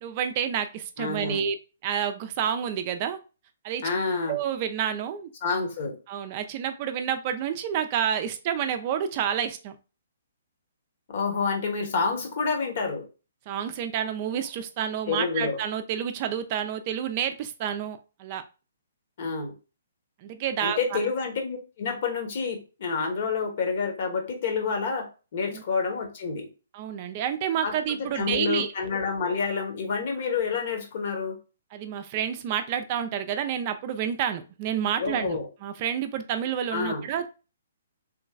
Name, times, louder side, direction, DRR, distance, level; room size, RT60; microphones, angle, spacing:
voice 1, 0.0-1.6 1.8-3.2 3.6-3.9 4.3-5.3 6.1-9.8 13.5-18.4 20.2-21.0 25.5-25.6 26.7-28.7 31.7-37.3, right 9 dB, 40° right, 9 dB, 0.4 m, -29 dB
voice 2, 1.0-1.5 3.8-4.4 5.4-6.0 11.1-13.0 15.1-15.6 19.2-19.5 20.6-26.5 27.6-31.4 35.0-35.5 36.7-37.1, left 5 dB, 55° left, 3 dB, 1.1 m, -28 dB
3.2 x 3.0 x 2.3 m, 0.32 s
figure-of-eight pair, 130°, 0 cm